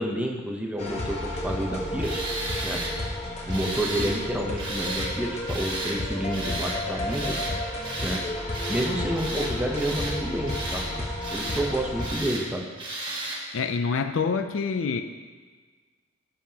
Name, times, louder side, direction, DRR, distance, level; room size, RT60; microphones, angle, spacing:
voice 1, 0.0-2.2 2.6-2.8 3.5-7.4 8.0-8.2 8.7-12.7, right 1 dB, 5° right, 0 dB, 0.8 m, -29 dB
sound 1, 0.8-12.2, left 1 dB, 35° left, 1.1 m, -32 dB
Tools, 2.0-2.9 3.5-4.2 4.6-5.1 5.5-6.0 6.3-6.8 7.1-7.5 7.8-8.2 8.5-8.9 9.2-10.2 10.5-10.9 11.2-11.7 12.0-12.4 12.8-13.4, right 2 dB, 25° right, 1.5 m, -33 dB
voice 2, 13.5-15.0, left 5 dB, 70° left, 8 dB, 0.5 m, -26 dB
14.0 x 5.6 x 2.9 m, 1.4 s
head